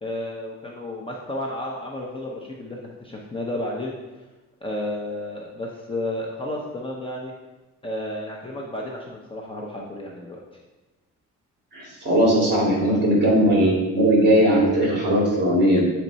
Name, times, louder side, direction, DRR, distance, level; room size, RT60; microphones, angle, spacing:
voice 1, 0.0-4.0 4.6-7.3 7.8-10.4 12.8-13.0, left 1 dB, 15° left, -2 dB, 0.6 m, -32 dB
voice 2, 11.7-15.9, right 1 dB, 35° right, -3 dB, 2.3 m, -19 dB
7.3 x 4.3 x 4.0 m, 1.2 s
cardioid pair, 155°, 31 cm